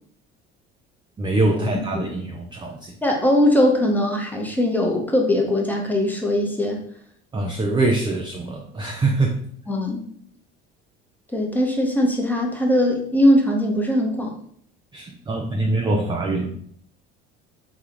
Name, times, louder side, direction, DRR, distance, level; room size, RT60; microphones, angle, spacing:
voice 1, 1.2-3.0 7.3-9.4 14.9-16.5, right 2 dB, 15° right, 1 dB, 0.4 m, -23 dB
voice 2, 3.0-6.8 9.7-10.1 11.3-14.4, left 1 dB, 5° left, 0 dB, 0.8 m, -20 dB
3.6 x 2.3 x 2.9 m, 0.62 s
hypercardioid pair, 75°, 31 cm